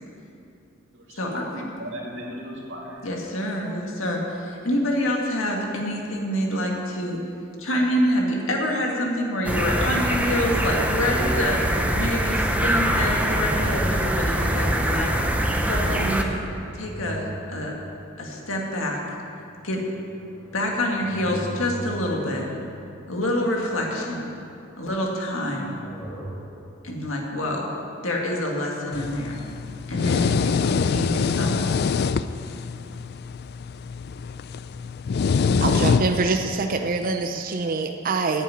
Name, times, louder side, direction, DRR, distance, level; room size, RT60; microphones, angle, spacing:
voice 1, 0.9-3.0, equal, 65° right, -4 dB, 2.6 m, -37 dB
voice 2, 3.0-7.2 7.6-15.1 15.7-16.4 16.7-17.7 18.2-19.0 19.6-19.8 20.5-22.5 23.1-24.3 24.8-25.7 26.8-27.6 28.0-29.4 29.9-31.6, left 1 dB, 80° left, 0 dB, 2.0 m, -26 dB
sound 1, 9.4-16.2, right 1 dB, 5° right, 0.8 m, -23 dB
sound 2, 15.8-18.1 18.8-23.9 25.1-26.9, right 1 dB, 15° left, 2.5 m, -41 dB
sound 3, 28.9-36.4, left 5 dB, 55° left, 0.3 m, -25 dB
voice 3, 35.6-38.4, right 3 dB, 45° right, 5 dB, 0.5 m, -25 dB
9.7 x 7.4 x 9.1 m, 2.8 s
head